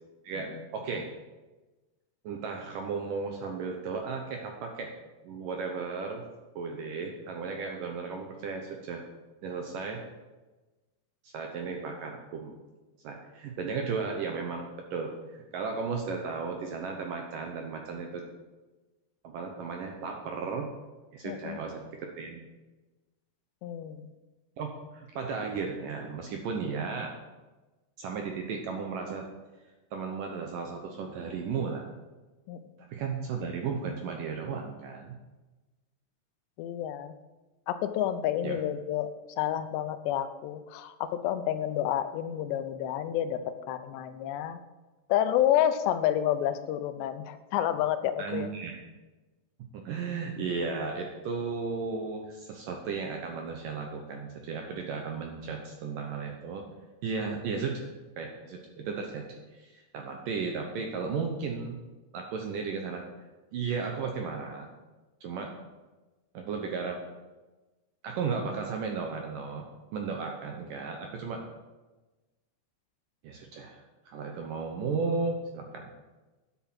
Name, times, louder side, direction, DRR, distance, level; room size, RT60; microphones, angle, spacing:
voice 1, 0.2-1.1 2.2-4.9 5.2-6.2 6.6-9.0 9.4-10.0 11.2-12.5 13.0-18.2 19.2-20.7 21.1-22.4 24.6-27.2 28.0-29.3 29.9-31.9 32.9-35.1 38.4-38.6 48.2-48.8 49.7-56.7 57.0-57.9 58.2-61.8 62.1-63.0 63.5-64.7 65.2-65.5 66.3-67.0 68.0-71.4 73.2-75.9, right 5 dB, 70° right, 3 dB, 2.1 m, -35 dB
voice 2, 21.2-21.6 23.6-24.1 32.5-32.6 36.6-37.2 37.7-44.6 45.1-48.5, left 11 dB, 80° left, 11 dB, 2.8 m, -29 dB
10.5 x 8.2 x 7.5 m, 1.2 s
omnidirectional pair, 5.0 m